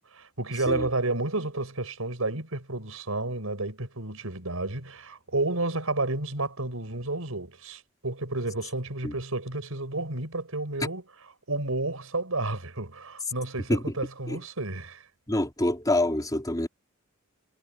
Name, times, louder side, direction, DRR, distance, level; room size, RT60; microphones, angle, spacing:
voice 1, 0.1-11.0 11.5-15.0, right 2 dB, 85° right, 5.1 m, -31 dB
voice 2, 15.3-16.7, left 1 dB, 20° left, 3.5 m, -26 dB
head